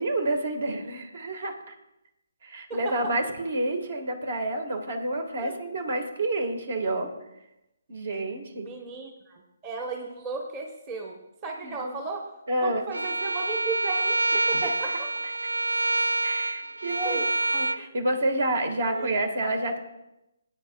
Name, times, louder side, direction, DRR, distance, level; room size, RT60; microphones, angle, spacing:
voice 1, 0.0-1.7 2.4-7.1 7.9-8.7 11.6-11.9 12.5-12.8 14.6-14.9 16.2-17.2 17.5-19.8, right 1 dB, 60° right, 6 dB, 1.7 m, -29 dB
voice 2, 2.7-3.1 5.4-5.6 8.6-15.1 17.0-17.3 17.8-17.9 18.8-19.1, right 3 dB, 25° right, 2 dB, 1.1 m, -36 dB
Bowed string instrument, 12.9-17.8, right 2 dB, 85° right, 0.3 m, -27 dB
18.5 x 9.1 x 2.3 m, 0.91 s
figure-of-eight pair, 145°, 0 cm